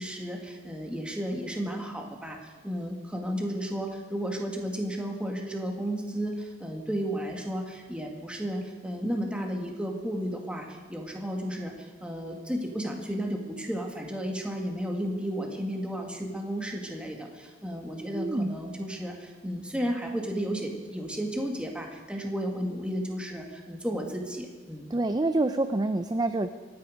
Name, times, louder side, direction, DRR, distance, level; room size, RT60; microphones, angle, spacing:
voice 1, 0.0-24.8, equal, 5° right, 1 dB, 1.9 m, -33 dB
voice 2, 18.1-18.5 24.9-26.5, right 2 dB, 20° right, 9 dB, 0.5 m, -27 dB
24.5 x 9.8 x 5.1 m, 1.3 s
head